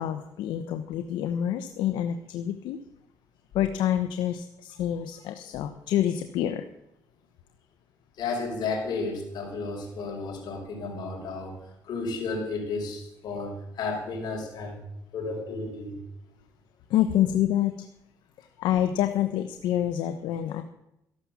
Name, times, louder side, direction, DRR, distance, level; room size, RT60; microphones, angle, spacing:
voice 1, 0.0-2.8 3.5-6.7 16.9-17.9 18.6-20.6, left 11 dB, 85° left, 8 dB, 1.0 m, -27 dB
voice 2, 8.2-11.6 11.8-14.8 15.1-16.0, left 3 dB, 65° left, 1 dB, 5.4 m, -32 dB
13.5 x 12.0 x 7.2 m, 0.84 s
cardioid pair, 95°, 8 cm